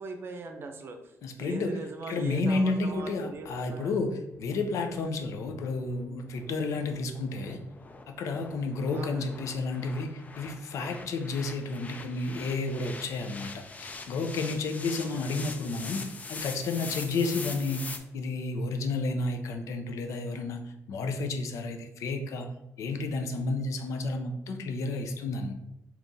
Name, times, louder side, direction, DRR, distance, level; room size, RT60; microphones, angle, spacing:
voice 1, 0.0-3.9 8.9-9.3 15.0-15.4, right 3 dB, 45° right, 5 dB, 0.6 m, -41 dB
voice 2, 1.2-1.8 2.1-7.6 8.2-17.9 18.1-20.6 20.9-22.5 22.8-25.5, left 3 dB, 80° left, 5 dB, 0.5 m, -31 dB
sound 1, 2.9-18.0, left 3 dB, 30° left, 0.4 m, -44 dB
3.6 x 3.0 x 3.9 m, 0.90 s
cardioid pair, 120°, 5 cm